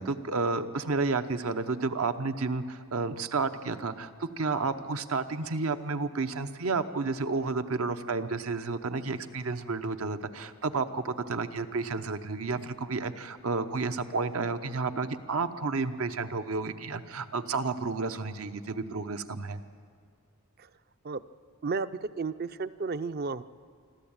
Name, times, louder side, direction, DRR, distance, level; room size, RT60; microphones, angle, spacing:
voice 1, 0.0-19.6, right 4 dB, 80° right, 9 dB, 0.9 m, -31 dB
voice 2, 21.6-23.4, right 4 dB, 45° right, 14 dB, 0.5 m, -33 dB
26.0 x 13.0 x 8.8 m, 2.1 s
head